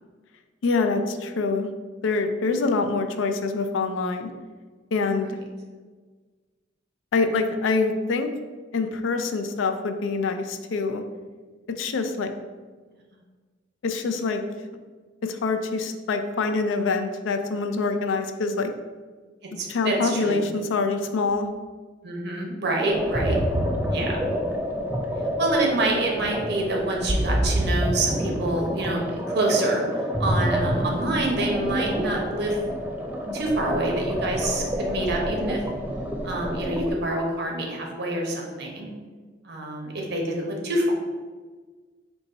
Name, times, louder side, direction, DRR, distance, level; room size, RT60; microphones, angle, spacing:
voice 1, 0.6-1.7 2.0-4.3 4.9-5.4 7.1-8.3 8.7-11.0 11.8-12.3 13.8-14.4 15.2-18.7 19.5-21.5, left 4 dB, 80° left, 6 dB, 0.4 m, -25 dB
voice 2, 19.6-20.5 22.0-23.4 23.9-24.2 25.4-29.8 30.2-32.6 33.3-35.6 36.2-38.9 39.4-40.9, right 2 dB, 60° right, 0 dB, 0.8 m, -27 dB
sound 1, 22.9-36.9, equal, 10° right, 0.3 m, -27 dB
4.0 x 2.3 x 4.0 m, 1.4 s
head